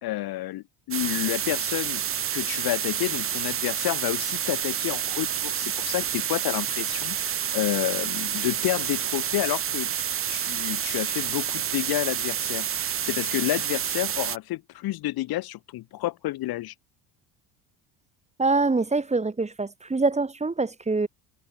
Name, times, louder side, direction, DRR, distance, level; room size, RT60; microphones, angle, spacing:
voice 1, 0.0-2.0 2.3-9.9 10.3-12.7 13.0-16.7, left 16 dB, 60° left, 0.9 m, -30 dB
sound 1, 0.9-14.4, right 9 dB, 30° right, 0.8 m, -29 dB
voice 2, 18.4-21.1, right 3 dB, 15° right, 1.6 m, -24 dB
supercardioid pair, 85°, 42 cm